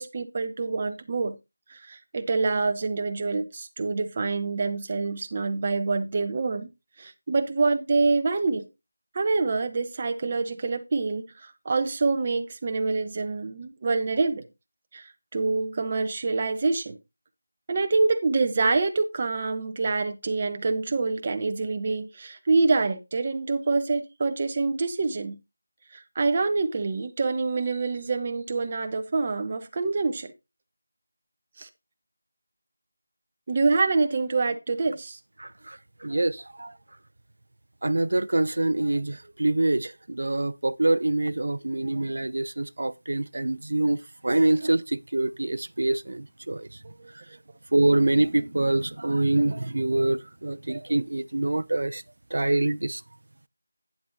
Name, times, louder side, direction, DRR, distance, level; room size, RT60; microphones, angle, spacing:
voice 1, 0.0-1.4 1.7-6.7 7.0-8.7 9.1-14.5 14.9-17.0 17.7-25.4 25.9-30.3 31.6-31.7 33.5-35.2 47.0-47.1, right 3 dB, 20° right, 0.8 m, -26 dB
voice 2, 35.4-35.8 36.0-36.7 37.8-44.0 44.2-46.7 47.7-52.0 52.3-53.0, right 2 dB, 55° right, 0.5 m, -25 dB
11.0 x 9.5 x 2.7 m
figure-of-eight pair, 180°, 0 cm